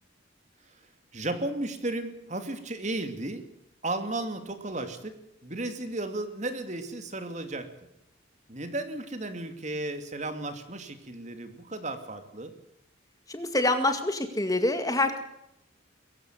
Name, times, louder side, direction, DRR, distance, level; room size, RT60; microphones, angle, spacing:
voice 1, 1.1-3.5 3.8-5.1 5.4-7.7 8.5-12.5, right 2 dB, 35° right, 8 dB, 2.7 m, -34 dB
voice 2, 13.3-15.2, left 2 dB, 20° left, 8 dB, 2.0 m, -26 dB
23.0 x 15.5 x 9.5 m, 0.79 s
head